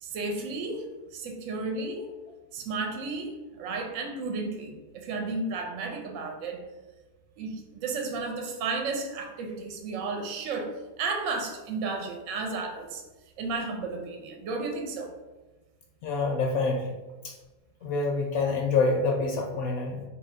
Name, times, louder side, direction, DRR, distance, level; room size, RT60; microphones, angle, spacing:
voice 1, 0.0-2.1 2.5-6.6 7.4-13.0 13.4-15.1, right 3 dB, 65° right, 3 dB, 0.9 m, -33 dB
voice 2, 16.0-17.0 17.2-17.3 17.8-20.0, left 3 dB, 75° left, 1 dB, 1.0 m, -26 dB
2.8 x 2.7 x 4.2 m, 1.2 s
omnidirectional pair, 1.6 m